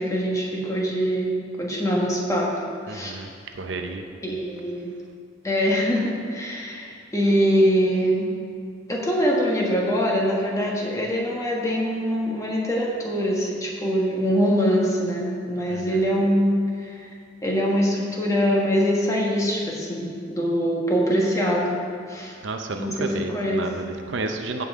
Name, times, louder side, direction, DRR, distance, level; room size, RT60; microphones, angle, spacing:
voice 1, 0.0-1.3 1.6-2.5 2.9-3.2 4.2-4.9 5.4-8.3 8.9-17.0 17.4-21.8 22.1-22.4 22.8-23.6, equal, 15° left, -3 dB, 1.4 m, -23 dB
voice 2, 2.9-3.3 3.6-4.0 15.7-15.8 22.4-24.6, right 3 dB, 75° right, 5 dB, 0.7 m, -31 dB
15.5 x 5.4 x 3.7 m, 2.2 s
head